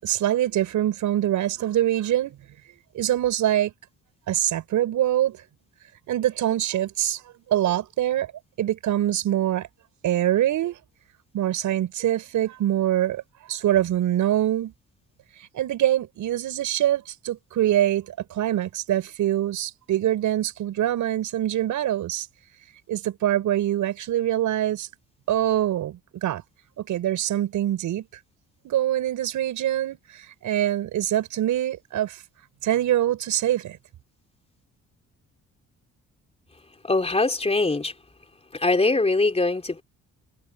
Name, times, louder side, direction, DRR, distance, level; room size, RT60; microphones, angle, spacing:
voice 1, 0.0-2.4 2.9-3.7 4.3-5.4 6.1-7.2 7.5-8.3 8.6-9.7 10.0-10.8 11.3-13.2 13.5-14.7 15.5-22.3 22.9-24.9 25.3-26.4 26.8-28.1 28.6-32.2 32.6-33.8, right 12 dB, 80° right, 7.0 m, -24 dB
voice 2, 36.8-37.9 38.5-39.8, left 3 dB, 20° left, 3.6 m, -22 dB
cardioid pair, 90°, 30 cm